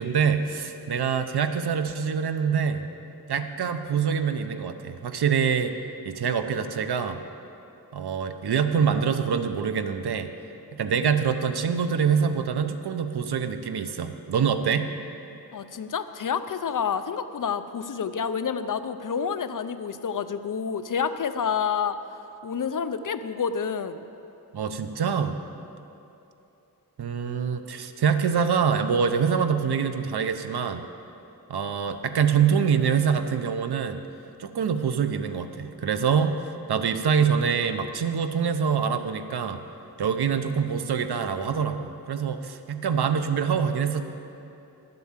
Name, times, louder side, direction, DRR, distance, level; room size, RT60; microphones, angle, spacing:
voice 1, 0.0-2.8 3.3-5.7 6.0-7.2 7.9-10.3 10.7-14.9 24.5-25.3 27.0-30.8 31.5-34.0 34.4-39.6 40.0-44.0, right 6 dB, 85° right, 9 dB, 0.7 m, -25 dB
voice 2, 15.5-22.0 22.4-24.1, left 6 dB, 55° left, 11 dB, 0.6 m, -29 dB
11.5 x 7.9 x 7.3 m, 2.8 s
wide cardioid pair, 110°, 38 cm